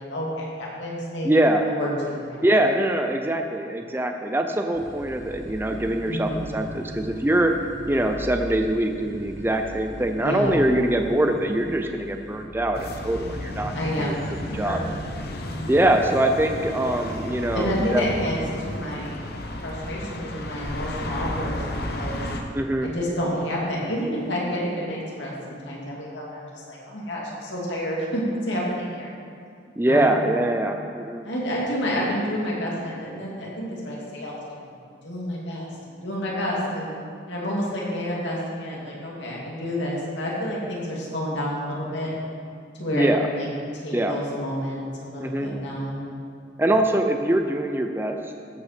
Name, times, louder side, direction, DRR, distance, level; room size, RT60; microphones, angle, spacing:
voice 1, 0.0-2.4 6.1-6.5 10.2-10.5 13.7-14.8 17.5-18.4 18.6-19.2 19.6-21.6 21.9-22.2 22.8-29.1 29.9-30.2 31.2-34.6 35.0-36.9 37.3-42.1 42.8-43.5 43.8-46.0, equal, 75° left, -4 dB, 2.5 m, -29 dB
voice 2, 1.2-1.7 2.4-7.5 7.9-14.1 14.5-14.8 15.7-18.0 22.5-22.9 29.8-31.2 42.9-43.3 43.9-44.1 45.2-45.5 46.6-48.2, right 1 dB, 10° right, 5 dB, 0.5 m, -23 dB
sound 1, 4.7-12.5, equal, 15° left, 1.2 m, -39 dB
sound 2, 12.7-22.4, left 1 dB, 55° left, 0.9 m, -33 dB
15.0 x 5.8 x 5.9 m, 2.3 s
head